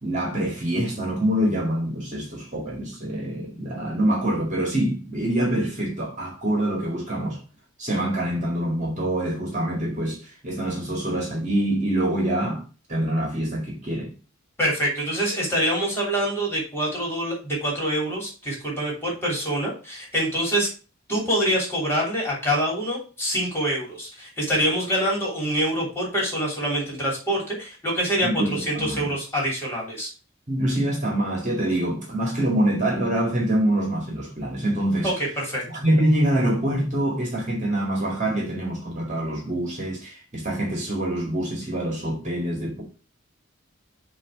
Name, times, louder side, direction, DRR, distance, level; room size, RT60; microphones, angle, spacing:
voice 1, 0.0-7.4 7.8-12.6 12.9-14.1 28.2-29.1 30.5-35.1 35.7-42.8, right 1 dB, 35° right, 2.1 m, -25 dB
voice 2, 14.6-20.7 21.1-30.1 35.0-35.6, equal, 10° left, 3.2 m, -25 dB
7.4 x 3.1 x 6.2 m
head